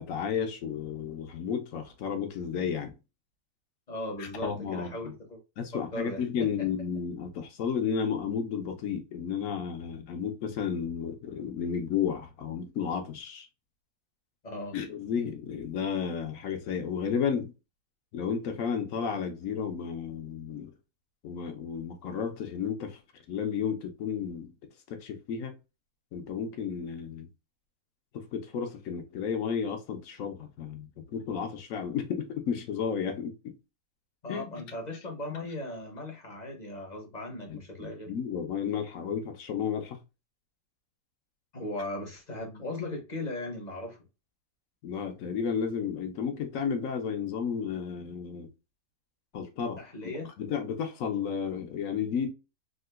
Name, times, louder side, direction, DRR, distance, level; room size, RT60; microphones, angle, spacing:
voice 1, 0.0-2.9 4.2-5.1 5.6-13.5 14.7-17.5 18.1-20.7 21.2-23.0 23.3-24.5 24.9-25.5 26.1-27.3 28.1-33.4 34.3-34.4 37.5-40.0 44.8-48.5 49.3-49.8 50.4-52.3, left 7 dB, 65° left, 0.9 m, -32 dB
voice 2, 3.9-5.4 5.7-6.2 6.6-6.7 14.4-14.8 34.2-38.1 41.5-44.0 49.8-50.3, left 1 dB, 35° left, 0.7 m, -38 dB
3.7 x 2.5 x 2.3 m
omnidirectional pair, 1.7 m